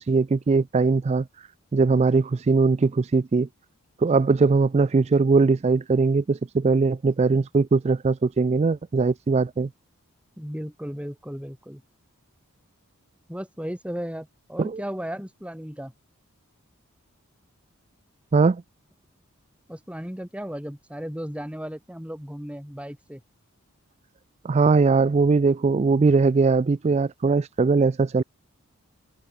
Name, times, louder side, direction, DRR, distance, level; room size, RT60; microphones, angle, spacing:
voice 1, 0.0-3.5 4.0-9.7 14.6-14.8 18.3-18.6 24.4-28.2, right 4 dB, 30° right, 0.3 m, -21 dB
voice 2, 10.4-11.8 13.3-15.9 19.7-23.2, equal, 5° right, 2.2 m, -35 dB
head